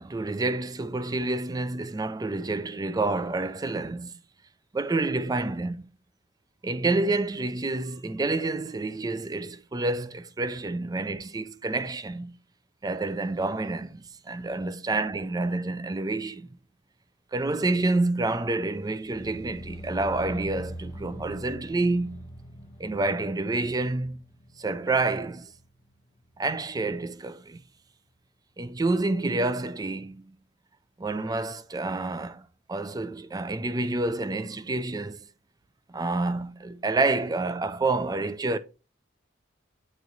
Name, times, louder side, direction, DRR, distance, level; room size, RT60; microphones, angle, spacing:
voice 1, 0.0-4.2 4.7-5.8 6.6-12.3 12.8-16.5 17.3-22.3 22.8-24.2 24.6-25.5 26.4-27.6 28.6-30.4 31.0-35.3 35.9-38.6, right 2 dB, 20° right, 0.4 m, -28 dB
sound 1, 18.8-26.0 26.2-26.7 27.0-27.1, right 1 dB, 20° left, 1.0 m, -43 dB
9.3 x 3.1 x 3.9 m
head